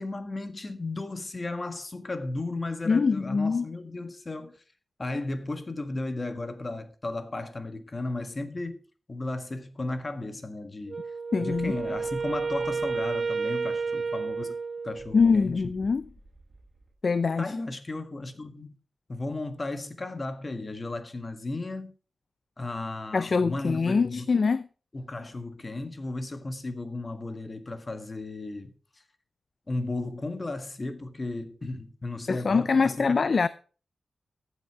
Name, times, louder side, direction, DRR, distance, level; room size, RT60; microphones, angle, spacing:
voice 1, 0.0-4.6 5.0-8.8 9.1-11.1 11.4-14.6 14.8-15.6 17.4-18.7 19.1-21.9 22.6-24.3 24.9-28.7 29.7-33.4, left 2 dB, 35° left, 1.6 m, -35 dB
voice 2, 2.9-3.7 11.3-11.8 15.1-16.1 17.0-17.5 23.1-24.7 32.3-33.5, left 4 dB, 55° left, 0.5 m, -24 dB
Wind instrument woodwind instrument, 10.9-15.3, right 4 dB, 50° right, 0.9 m, -31 dB
sound 1, 11.5-13.3 15.0-16.9, right 2 dB, 25° right, 6.3 m, -53 dB
14.5 x 8.1 x 4.7 m
wide cardioid pair, 95°, 0 cm